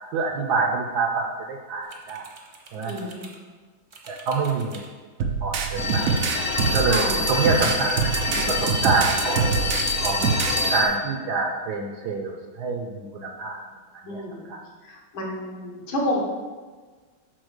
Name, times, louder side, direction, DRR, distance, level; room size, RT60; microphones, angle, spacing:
voice 1, 0.1-2.3 2.7-2.9 4.1-4.8 5.4-6.1 6.7-7.0 7.3-8.2 8.5-9.6 10.0-13.6 14.0-14.2 14.5-14.6, right 4 dB, 70° right, 3 dB, 1.0 m, -26 dB
sound 1, 1.8-3.4 3.9-4.9 5.9-6.8 7.5-8.3 8.9-10.0 10.3-10.7, right 3 dB, 45° right, 0.8 m, -45 dB
voice 2, 2.9-3.2 6.9-7.3 14.1-14.5 14.8-16.2, left 1 dB, 75° left, -1 dB, 2.0 m, -29 dB
sound 2, 5.2-10.6, right 6 dB, 90° right, 0.7 m, -25 dB
sound 3, 5.8-10.9, left 2 dB, 50° left, 0.5 m, -26 dB
6.1 x 4.3 x 6.4 m, 1.4 s
omnidirectional pair, 2.2 m